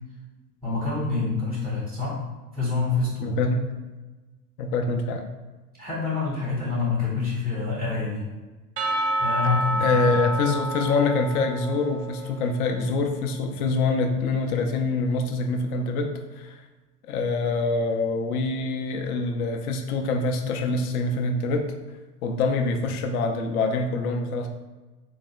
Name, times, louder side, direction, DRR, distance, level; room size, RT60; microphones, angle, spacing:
voice 1, 0.6-2.2 2.5-3.3 5.8-8.2 9.2-10.1, left 4 dB, ahead, -7 dB, 0.4 m, -27 dB
voice 2, 3.2-3.6 4.6-5.3 9.4-9.5 9.8-16.7 17.1-21.7 22.2-24.5, left 3 dB, 65° left, 4 dB, 0.6 m, -25 dB
Percussion / Church bell, 8.8-12.7, right 1 dB, 70° right, 0.7 m, -28 dB
4.0 x 2.1 x 2.3 m, 1.2 s
hypercardioid pair, 100°, 49 cm